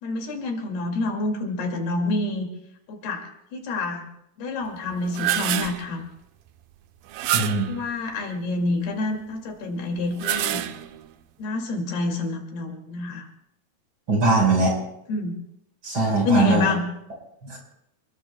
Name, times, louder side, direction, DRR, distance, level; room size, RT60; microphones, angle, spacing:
voice 1, 0.0-2.5 2.9-4.1 4.4-6.0 7.7-10.6 11.4-13.3 15.1-15.3 16.2-16.9, left 2 dB, 75° left, 2 dB, 4.2 m, -27 dB
sound 1, 4.9-5.9 7.1-7.8 10.0-11.1, right 12 dB, 75° right, 2.2 m, -27 dB
voice 2, 7.3-7.7 14.1-14.8 15.8-16.7 17.4-17.6, right 3 dB, 30° right, 0 dB, 5.0 m, -21 dB
28.0 x 21.0 x 2.2 m, 0.79 s
omnidirectional pair, 4.5 m